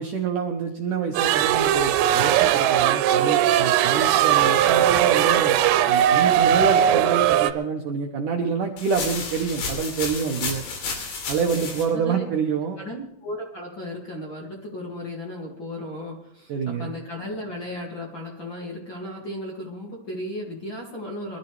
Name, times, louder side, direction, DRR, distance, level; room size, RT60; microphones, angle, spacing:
voice 1, 0.0-5.6 5.9-10.6 11.3-12.8 16.5-16.9, right 6 dB, 70° right, 2 dB, 2.0 m, -27 dB
sound 1, 1.1-7.5, right 11 dB, 90° right, 2.9 m, -19 dB
sound 2, 8.8-11.8, left 4 dB, 75° left, 4.8 m, -31 dB
voice 2, 11.3-11.6 11.9-12.2 12.8-21.4, left 1 dB, 35° left, -2 dB, 2.2 m, -35 dB
23.0 x 13.5 x 3.3 m, 0.79 s
omnidirectional pair, 4.9 m